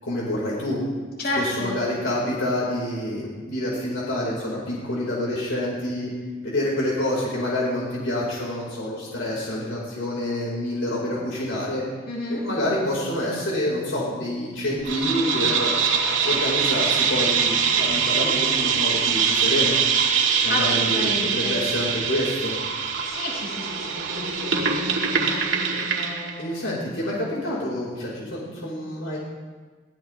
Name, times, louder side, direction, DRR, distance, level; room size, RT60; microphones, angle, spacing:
voice 1, 0.0-0.8 1.4-6.1 6.4-11.8 12.3-15.7 16.2-19.8 20.4-21.1 21.3-22.5 26.4-29.2, left 1 dB, 75° left, -5 dB, 4.9 m, -27 dB
voice 2, 1.2-1.7 12.1-12.4 20.5-21.5 23.0-26.7, left 2 dB, 50° left, -4 dB, 5.9 m, -31 dB
sound 1, 14.8-26.4, right 6 dB, 75° right, 2.1 m, -23 dB
22.5 x 17.0 x 3.5 m, 1.4 s
head